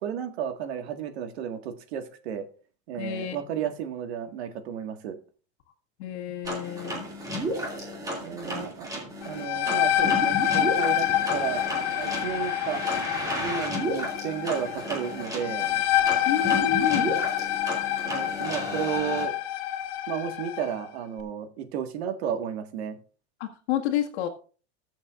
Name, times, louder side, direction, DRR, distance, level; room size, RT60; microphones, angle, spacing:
voice 1, 0.0-2.4 2.9-5.2 8.2-8.9 9.2-11.6 11.9-12.8 13.4-15.7 18.1-19.4 20.1-23.0, right 8 dB, 70° right, 6 dB, 1.8 m, -33 dB
voice 2, 3.0-3.4 6.0-7.1 8.5-8.6 9.5-9.6 16.2-17.2 23.4-24.3, left 10 dB, 75° left, -1 dB, 1.7 m, -30 dB
sound 1, 6.4-19.3, equal, 10° right, 2.4 m, -33 dB
sound 2, 9.2-20.7, left 12 dB, 50° left, 0.9 m, -27 dB
21.5 x 7.2 x 2.5 m, 0.39 s
supercardioid pair, 180°, 33 cm